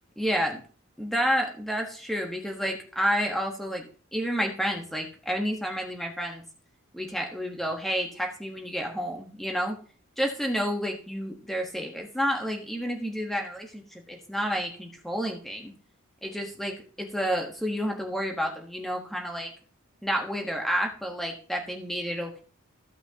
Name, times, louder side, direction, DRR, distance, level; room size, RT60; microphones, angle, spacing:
voice 1, 0.2-0.6 1.0-3.8 4.1-6.4 6.9-9.7 10.2-15.7 16.2-19.5 20.0-22.4, equal, ahead, 2 dB, 1.3 m, -30 dB
14.5 x 5.6 x 2.9 m, 0.41 s
head